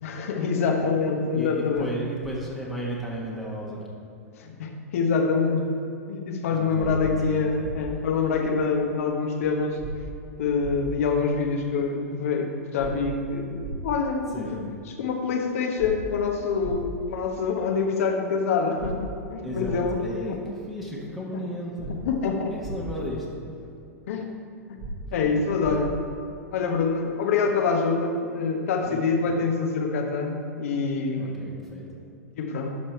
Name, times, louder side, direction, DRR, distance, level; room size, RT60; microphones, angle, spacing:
voice 1, 0.0-1.9 4.3-5.7 6.1-9.8 10.4-14.4 15.0-20.0 20.3-20.4 21.3-21.4 22.0-22.5 24.1-24.3 24.7-24.8 25.1-26.0 26.5-31.5 32.3-32.7, left 5 dB, 60° left, 3 dB, 1.2 m, -26 dB
voice 2, 1.3-3.8 6.5-7.5 14.3-14.6 19.4-21.9 22.5-23.3 25.1-25.6 28.8-29.2 31.2-31.8, equal, ahead, -5 dB, 1.4 m, -35 dB
sound 1, 6.8-6.9 7.6-7.8 9.8-9.9 10.6-10.7 12.8-12.9 13.6-13.8 15.8-15.9 16.6-16.8 18.8-18.9 19.6-19.8 21.8-21.9 22.6-22.7 24.8-24.9 25.6-25.7, right 2 dB, 50° right, 1.7 m, -35 dB
12.0 x 4.6 x 4.5 m, 2.6 s
hypercardioid pair, 105°, 8 cm